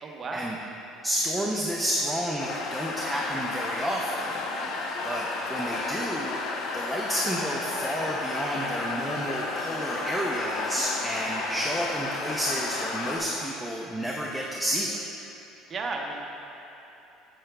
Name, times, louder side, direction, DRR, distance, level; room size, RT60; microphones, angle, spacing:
voice 1, 0.0-0.6 15.7-16.3, right 3 dB, 30° right, 0 dB, 0.8 m, -34 dB
voice 2, 1.0-4.4 5.0-6.4 6.7-14.9, equal, ahead, -3 dB, 0.5 m, -30 dB
sound 1, 2.4-13.2, left 3 dB, 60° left, 0.7 m, -32 dB
8.4 x 7.8 x 2.3 m, 3.0 s
cardioid pair, 120°, 0 cm